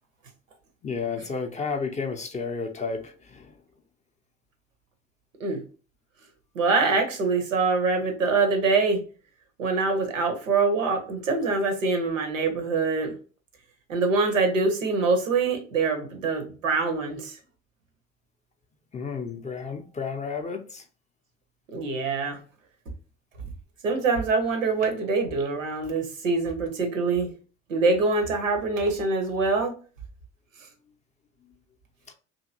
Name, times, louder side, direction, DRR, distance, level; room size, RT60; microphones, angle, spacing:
voice 1, 0.8-3.6 18.9-20.9, left 5 dB, 20° left, 0.4 m, -32 dB
voice 2, 6.5-9.0 9.6-13.1 13.9-17.4 21.7-22.4 23.8-27.3 27.7-29.7, right 4 dB, 85° right, 0.6 m, -24 dB
2.7 x 2.6 x 2.5 m
figure-of-eight pair, 55°, 38 cm